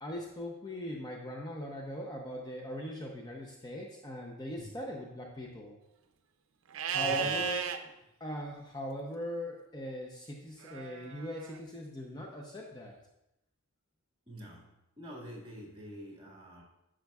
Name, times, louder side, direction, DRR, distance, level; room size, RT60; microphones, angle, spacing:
voice 1, 0.0-5.8 6.9-7.7 8.2-12.9, equal, 20° left, -1 dB, 0.6 m, -40 dB
Livestock farm animals working animals, 6.7-7.8 10.6-11.6, right 6 dB, 70° right, 0.5 m, -34 dB
voice 2, 7.0-7.5 14.3-16.6, equal, 25° right, -2 dB, 1.8 m, -47 dB
10.5 x 6.4 x 2.3 m, 0.89 s
head